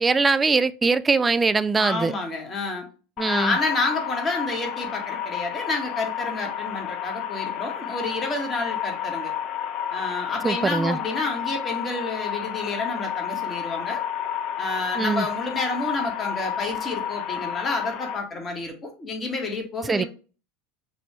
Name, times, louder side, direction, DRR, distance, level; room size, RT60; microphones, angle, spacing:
voice 1, 0.0-2.1 3.2-3.6 10.4-11.0 15.0-15.3 19.8-20.0, right 4 dB, 20° right, 0.4 m, -22 dB
voice 2, 1.8-2.8 3.2-9.3 9.9-14.0 14.6-20.1, left 2 dB, 25° left, 1.8 m, -29 dB
sound 1, 3.2-18.2, left 9 dB, 50° left, 0.6 m, -31 dB
6.0 x 2.7 x 3.3 m
hypercardioid pair, 80°, 0 cm